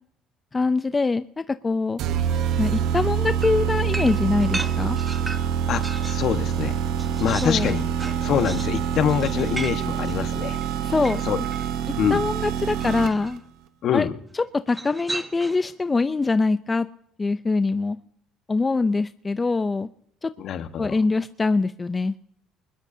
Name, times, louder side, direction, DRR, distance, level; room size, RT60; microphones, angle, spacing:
voice 1, 0.5-2.0 2.6-5.0 7.4-7.8 10.8-11.2 12.1-13.4 13.9-14.1 14.5-16.9 17.2-18.0 18.5-19.9 20.2-20.3 20.8-22.2, left 3 dB, 25° left, 12 dB, 0.5 m, -23 dB
sound 1, 2.0-13.4, right 8 dB, 70° right, 1.0 m, -26 dB
sound 2, 3.4-6.3 6.7-11.7 12.8-13.4 14.7-15.7, right 2 dB, 15° right, 1.3 m, -36 dB
voice 2, 5.7-6.8 7.2-7.9 8.2-10.6 11.2-11.4 12.0-12.2 13.8-14.1 20.4-21.0, left 9 dB, 60° left, 9 dB, 1.3 m, -25 dB
23.5 x 20.5 x 2.8 m, 0.68 s
supercardioid pair, 85°, 0 cm